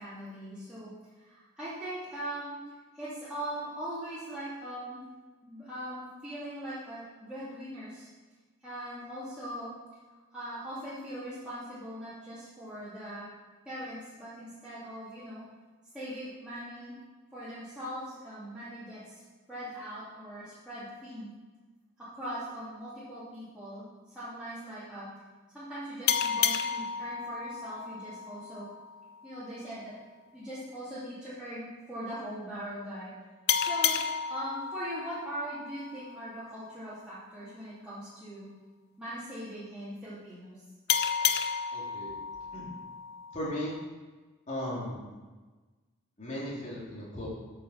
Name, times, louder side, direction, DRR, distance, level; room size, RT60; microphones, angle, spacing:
voice 1, 0.0-2.6 2.9-5.0 5.4-8.1 8.6-9.7 10.3-13.2 13.6-15.4 15.9-16.9 17.3-19.2 19.5-21.3 22.0-25.1 25.5-28.7 29.2-29.9 30.3-33.1 33.6-34.0 34.3-38.5 39.0-40.6, right 1 dB, 5° right, -13 dB, 2.7 m, -40 dB
sound 1, 26.1-29.3 33.5-36.7 40.9-43.8, left 7 dB, 50° left, 0.5 m, -32 dB
voice 2, 41.7-42.2 42.5-42.7 43.3-43.7 44.5-45.0 46.2-47.3, equal, 35° left, -5 dB, 3.2 m, -36 dB
9.3 x 6.6 x 6.5 m, 1.3 s
head